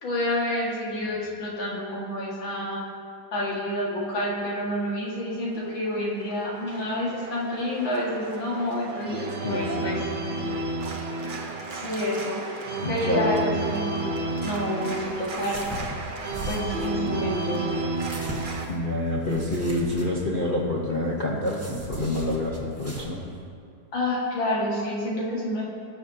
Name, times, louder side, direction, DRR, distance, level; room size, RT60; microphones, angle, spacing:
voice 1, 0.0-2.8 3.3-10.0 11.7-12.4 12.9-14.1 14.4-15.6 16.5-17.7 23.9-25.6, left 1 dB, 85° left, -5 dB, 2.6 m, -28 dB
Organ, 5.5-18.7, right 2 dB, 90° right, 0.4 m, -32 dB
voice 2, 9.4-10.1 12.8-13.4 18.7-23.2, left 1 dB, 45° left, -5 dB, 0.6 m, -27 dB
sound 1, 14.2-23.0, right 1 dB, 15° right, 0.6 m, -40 dB
18.5 x 6.4 x 2.7 m, 2.5 s
omnidirectional pair, 2.1 m